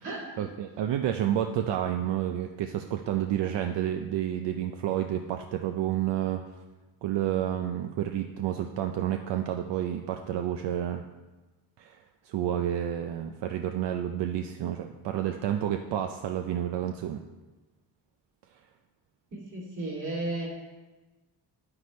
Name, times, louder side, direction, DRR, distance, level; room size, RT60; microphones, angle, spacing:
voice 1, 0.4-6.4 7.0-11.0 11.8-12.0 12.2-17.2, right 11 dB, 80° right, 5 dB, 0.6 m, -30 dB
voice 2, 19.3-20.5, right 2 dB, 45° right, -2 dB, 2.8 m, -34 dB
9.7 x 9.6 x 3.2 m, 1.2 s
cardioid pair, 120°, 41 cm